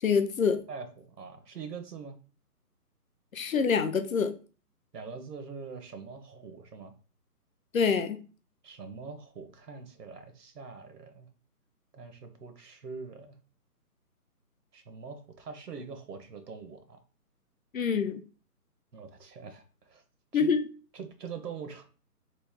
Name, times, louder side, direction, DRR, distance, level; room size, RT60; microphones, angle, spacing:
voice 1, 0.0-0.6 3.3-4.3 7.7-8.2 17.7-18.2 20.3-20.7, left 6 dB, 60° left, 8 dB, 0.5 m, -26 dB
voice 2, 0.7-2.2 4.9-6.9 8.6-11.3 11.9-13.4 14.7-17.0 18.9-20.0 20.3-20.5 20.9-21.8, right 5 dB, 80° right, 7 dB, 0.9 m, -43 dB
3.1 x 2.5 x 3.6 m, 0.36 s
hypercardioid pair, 165°, 47 cm